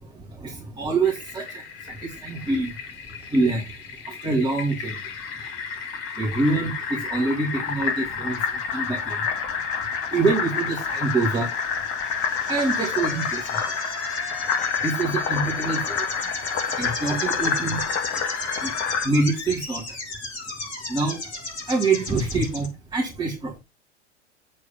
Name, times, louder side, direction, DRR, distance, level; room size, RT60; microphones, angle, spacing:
voice 1, 0.0-2.8 3.3-3.7 4.0-5.1 6.2-9.2 10.1-11.5 12.4-13.6 14.8-16.1 16.7-17.8 18.6-18.7 19.0-20.0 20.9-21.2 21.7-23.6, right 3 dB, 10° right, -4 dB, 2.4 m, -25 dB
Fill (with liquid), 1.0-19.1, left 6 dB, 35° left, 1.9 m, -29 dB
sound 1, 8.3-22.6, left 2 dB, 60° left, 4.8 m, -36 dB
7.6 x 4.7 x 5.2 m, 0.25 s
figure-of-eight pair, 90°, 36 cm